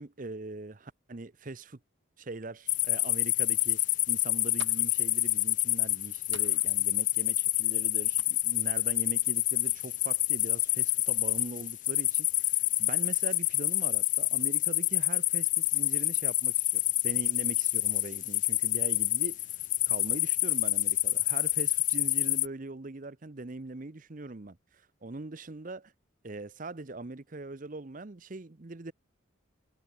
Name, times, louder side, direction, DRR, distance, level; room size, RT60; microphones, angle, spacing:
voice 1, 0.0-1.8 2.2-3.8 4.1-19.6 19.9-25.9 26.2-28.9, right 2 dB, 40° right, 0.7 m, -42 dB
sound 1, 2.7-22.5, left 16 dB, 40° left, 0.6 m, -28 dB
sound 2, 4.3-10.3, right 7 dB, 65° right, 1.8 m, -55 dB
head